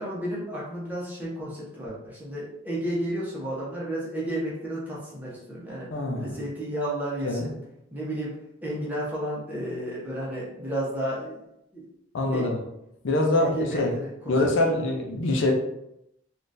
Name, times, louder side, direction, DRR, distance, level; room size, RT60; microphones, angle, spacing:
voice 1, 0.0-5.9 6.2-7.6 7.9-8.3 8.6-11.4 11.7-11.9 12.3-12.5 13.4-14.4, right 1 dB, 10° right, -7 dB, 0.9 m, -32 dB
voice 2, 5.9-6.3 7.2-7.5 12.1-12.6 13.0-13.9 14.3-15.5, left 2 dB, 70° left, 1 dB, 0.6 m, -24 dB
3.7 x 2.4 x 2.6 m, 0.81 s
head